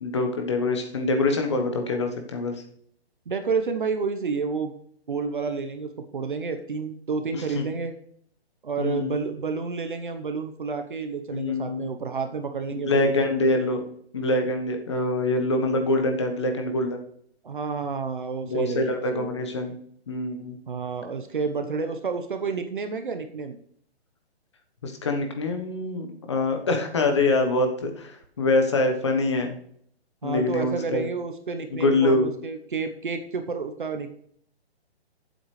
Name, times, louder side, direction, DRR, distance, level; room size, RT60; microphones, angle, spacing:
voice 1, 0.0-2.6 7.5-7.6 8.8-9.1 11.3-11.8 12.7-13.8 14.1-17.0 18.5-19.8 20.1-20.6 24.8-29.5 30.2-31.1 31.7-32.2, left 2 dB, 25° left, 4 dB, 1.2 m, -24 dB
voice 2, 3.3-4.7 5.1-7.9 8.6-13.2 17.4-19.5 20.7-23.6 30.2-34.1, right 5 dB, 50° right, 7 dB, 1.0 m, -30 dB
15.0 x 8.0 x 3.3 m, 0.65 s
hypercardioid pair, 180°, 33 cm